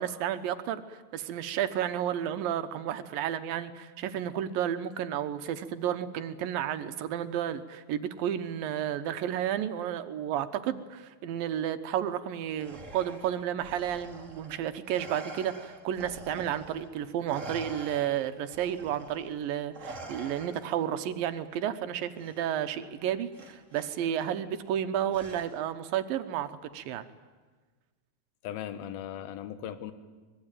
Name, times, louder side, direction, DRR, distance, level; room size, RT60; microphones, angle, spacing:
voice 1, 0.0-27.1, right 10 dB, 75° right, 10 dB, 2.6 m, -32 dB
Respiratory sounds, 12.6-16.9 17.3-20.9 22.2-22.4 23.3-23.9 25.1-25.8, right 2 dB, 25° right, 2.1 m, -45 dB
voice 2, 28.4-29.9, left 10 dB, 80° left, 12 dB, 3.1 m, -38 dB
24.5 x 22.0 x 9.2 m, 1.4 s
omnidirectional pair, 4.3 m